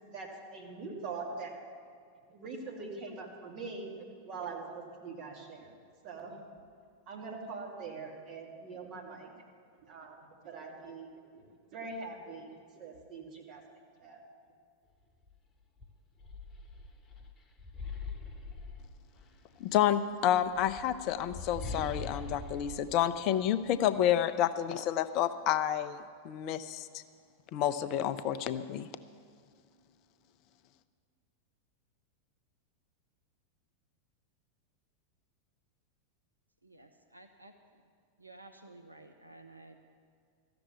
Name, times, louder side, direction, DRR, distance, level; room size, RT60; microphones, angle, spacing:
voice 1, 0.1-1.5 2.3-3.9 4.2-5.7 6.0-6.4 7.1-9.3 9.8-13.6 14.0-14.2, right 4 dB, 40° right, 0 dB, 2.6 m, -43 dB
sound 1, 15.2-15.4 15.8-19.4 20.4-24.0, left 3 dB, 25° left, 1.3 m, -43 dB
voice 2, 19.6-27.0 27.5-28.9, left 11 dB, 40° left, 13 dB, 0.5 m, -29 dB
voice 3, 36.6-37.5 38.2-39.8, right 2 dB, 85° right, 6 dB, 0.8 m, -53 dB
13.5 x 6.9 x 9.6 m, 2.2 s
figure-of-eight pair, 90°, 0 cm